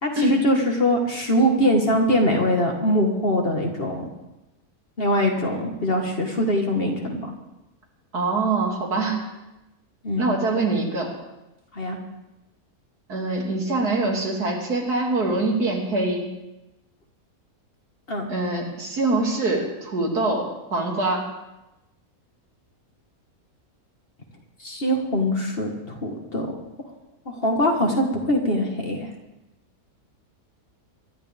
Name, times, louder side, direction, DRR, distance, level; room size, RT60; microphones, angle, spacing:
voice 1, 0.0-4.0 5.0-7.3 10.0-10.3 11.7-12.0 18.1-18.3 24.6-26.5 27.4-29.1, equal, 40° left, 2 dB, 1.9 m, -22 dB
voice 2, 8.1-9.2 10.2-11.1 13.1-16.3 18.3-21.3, right 2 dB, 80° right, -1 dB, 3.1 m, -24 dB
23.5 x 12.0 x 3.5 m, 0.96 s
omnidirectional pair, 1.6 m